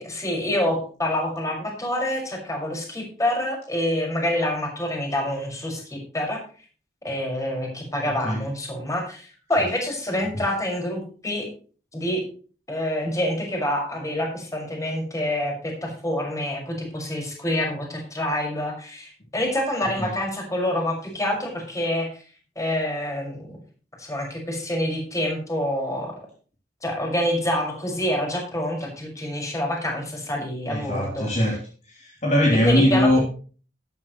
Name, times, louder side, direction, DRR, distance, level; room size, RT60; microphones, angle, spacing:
voice 1, 0.0-6.4 7.0-11.5 11.9-12.2 12.7-22.1 22.6-23.5 24.0-26.1 26.8-31.6 32.6-33.2, left 1 dB, 20° left, 0 dB, 5.9 m, -27 dB
voice 2, 30.7-31.6 32.0-33.2, left 1 dB, 40° left, -2 dB, 3.3 m, -20 dB
14.0 x 12.5 x 3.2 m, 0.39 s
head